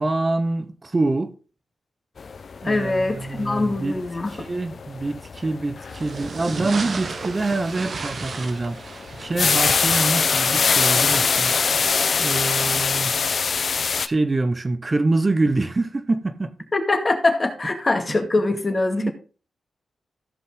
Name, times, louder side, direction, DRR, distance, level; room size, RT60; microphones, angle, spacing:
voice 1, 0.0-1.3 2.6-4.0 4.3-8.9 9.2-11.5 12.2-13.1 14.0-16.5 18.9-19.1, right 2 dB, 35° right, 0.9 m, -25 dB
sound 1, 2.2-14.1, left 5 dB, 60° left, 0.6 m, -24 dB
voice 2, 2.6-4.3 16.7-19.1, left 2 dB, 35° left, 2.0 m, -23 dB
sound 2, 5.9-11.9, right 4 dB, 60° right, 1.1 m, -35 dB
15.0 x 5.4 x 3.7 m
cardioid pair, 55°, 0 cm